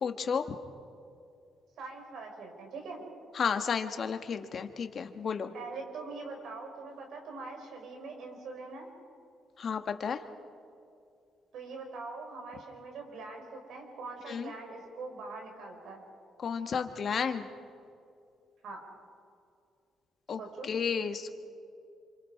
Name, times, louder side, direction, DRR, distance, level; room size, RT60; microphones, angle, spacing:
voice 1, 0.0-0.6 3.3-5.5 9.6-10.2 14.3-14.5 16.4-17.5 20.3-21.3, left 6 dB, 50° left, 7 dB, 1.5 m, -32 dB
voice 2, 1.8-3.0 5.5-8.9 11.5-16.0 18.6-18.8 20.4-20.7, right 3 dB, 75° right, 2 dB, 4.9 m, -43 dB
27.0 x 26.0 x 4.9 m, 2.5 s
cardioid pair, 90°, 0 cm